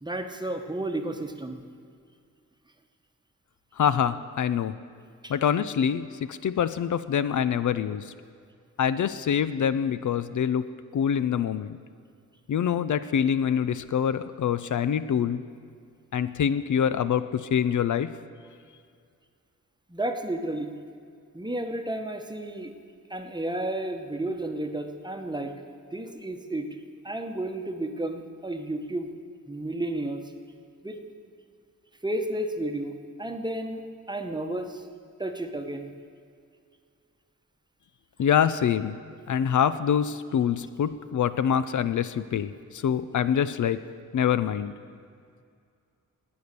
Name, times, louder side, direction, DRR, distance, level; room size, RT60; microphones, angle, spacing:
voice 1, 0.0-1.6 5.2-5.3 19.9-20.7 21.3-22.7 23.1-25.5 25.9-26.7 27.0-29.1 29.5-30.2 30.8-31.0 32.0-33.8 34.1-34.9 35.2-35.9 39.3-39.4, right 1 dB, 15° right, 5 dB, 1.0 m, -32 dB
voice 2, 3.8-4.8 5.3-8.1 8.8-10.6 10.9-11.8 12.5-15.4 16.1-18.1 38.2-39.0 39.3-43.8 44.1-44.7, left 8 dB, 70° left, 13 dB, 0.5 m, -25 dB
19.0 x 8.7 x 6.7 m, 2.2 s
wide cardioid pair, 115°, 32 cm